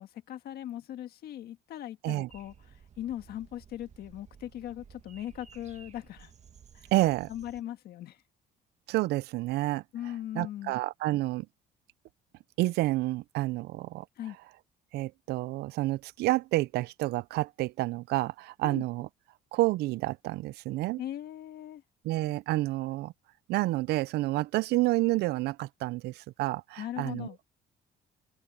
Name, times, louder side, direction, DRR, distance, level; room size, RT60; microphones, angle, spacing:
voice 1, 0.0-2.5 3.0-6.3 6.7-6.9 7.3-8.2 9.9-10.7 14.2-14.4 18.6-18.8 21.0-21.8 26.8-27.4, left 12 dB, 65° left, 1.6 m, -39 dB
sound 1, 2.3-7.6, right 7 dB, 40° right, 1.9 m, -55 dB
voice 2, 6.9-7.3 8.9-9.8 10.3-11.5 12.6-14.0 14.9-19.1 19.5-21.0 22.0-23.1 23.5-27.3, right 18 dB, 75° right, 0.4 m, -29 dB
open air
cardioid pair, 110°, 17 cm